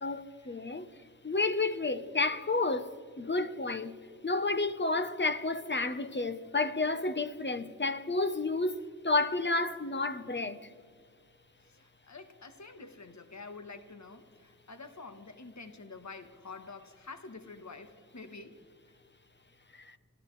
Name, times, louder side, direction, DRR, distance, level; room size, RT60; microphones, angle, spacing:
voice 1, 0.0-0.9 1.2-4.0 4.2-10.6 19.7-20.0, left 3 dB, 35° left, 0.9 m, -31 dB
voice 2, 11.6-18.6, left 3 dB, 55° left, 1.3 m, -48 dB
28.5 x 13.0 x 3.2 m
wide cardioid pair, 50°, 33 cm